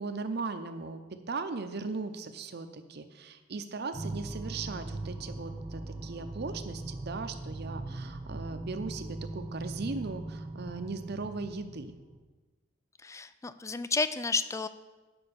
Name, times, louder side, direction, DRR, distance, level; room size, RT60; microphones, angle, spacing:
voice 1, 0.0-12.0, right 3 dB, 55° right, 8 dB, 0.7 m, -38 dB
sound 1, 3.9-12.2, right 2 dB, 30° right, 0.9 m, -40 dB
voice 2, 13.0-14.7, left 4 dB, 15° left, 13 dB, 0.3 m, -31 dB
8.8 x 5.3 x 6.9 m, 1.2 s
head